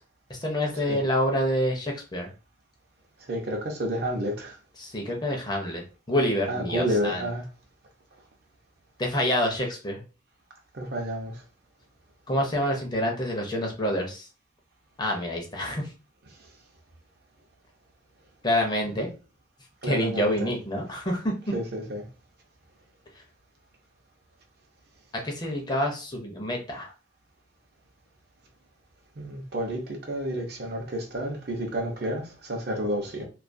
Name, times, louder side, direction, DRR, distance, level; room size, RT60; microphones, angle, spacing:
voice 1, 0.3-2.3 4.8-5.8 6.1-7.3 9.0-10.0 12.3-14.3 15.0-15.9 18.4-19.1 19.8-21.3 25.2-26.9, equal, 20° left, 0.5 m, -27 dB
voice 2, 3.3-4.6 6.5-7.4 10.7-11.4 19.8-20.5 21.5-22.1 29.2-33.2, equal, 55° right, 0.6 m, -30 dB
2.3 x 2.2 x 2.5 m
head